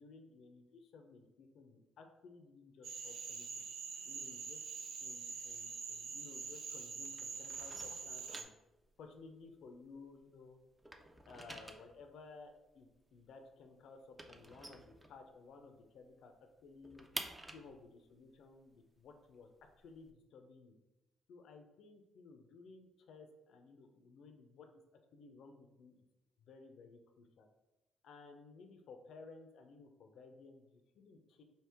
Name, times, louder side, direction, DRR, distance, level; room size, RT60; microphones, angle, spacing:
voice 1, 0.0-3.6 4.0-4.6 5.0-8.5 9.0-10.6 11.3-16.3 16.6-17.1 17.4-19.5 19.8-20.8 21.3-24.7 25.1-26.0 26.4-27.5 28.0-31.4, left 4 dB, 75° left, 5 dB, 0.6 m, -57 dB
Cricket / Frog, 2.8-8.4, right 5 dB, 75° right, 0.6 m, -45 dB
sound 1, 5.4-6.9 7.1-10.3 10.6-15.7 16.0-16.1 16.4-20.1, right 1 dB, 15° right, 0.5 m, -50 dB
4.6 x 2.8 x 3.5 m, 1.0 s
cardioid pair, 90°, 0 cm